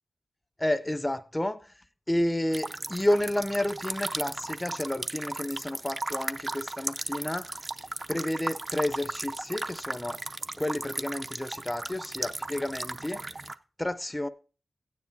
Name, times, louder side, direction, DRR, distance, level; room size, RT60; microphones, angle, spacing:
voice 1, 0.6-1.7 2.1-7.5 8.1-10.2 10.6-13.2 13.8-14.3, left 1 dB, 15° left, 0.5 m, -30 dB
sound 1, 2.5-13.5, right 2 dB, 35° right, 0.5 m, -36 dB
16.0 x 9.4 x 2.6 m
wide cardioid pair, 85°, 0 cm